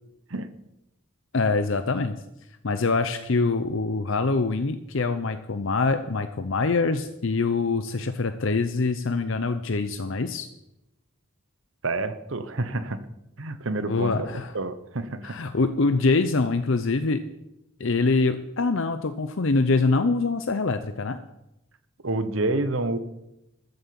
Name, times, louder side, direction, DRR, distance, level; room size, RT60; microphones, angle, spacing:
voice 1, 1.3-2.2 2.6-10.5 13.9-14.5 15.2-17.2 17.8-21.2, left 3 dB, 65° left, 10 dB, 0.7 m, -24 dB
voice 2, 11.8-13.0 13.4-14.3 14.5-15.4 22.0-23.0, right 2 dB, 65° right, 11 dB, 1.1 m, -28 dB
14.0 x 7.9 x 7.1 m, 0.88 s
head